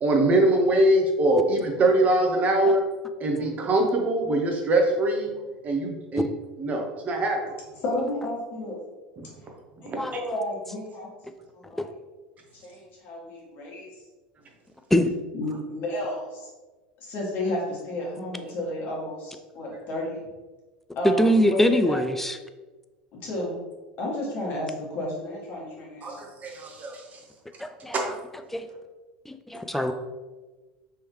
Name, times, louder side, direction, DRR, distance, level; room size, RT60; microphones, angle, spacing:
voice 1, 0.0-2.8 3.2-5.3 5.6-6.3 6.6-7.6 9.2-9.3 9.9-10.0 26.0-27.0 27.9-28.1 29.7-29.9, right 1 dB, 35° right, 2 dB, 0.8 m, -23 dB
voice 2, 7.8-8.8 9.8-11.1 11.5-11.8 12.5-13.9 15.3-16.5 17.0-20.2 20.9-22.0 23.2-23.5 24.0-26.2, left 1 dB, 50° left, -3 dB, 1.4 m, -32 dB
voice 3, 21.0-22.4 27.6-28.1 28.5-28.7 29.3-29.9, equal, 5° left, 8 dB, 0.3 m, -23 dB
3.3 x 3.0 x 3.0 m, 1.2 s
hypercardioid pair, 75°, 4 cm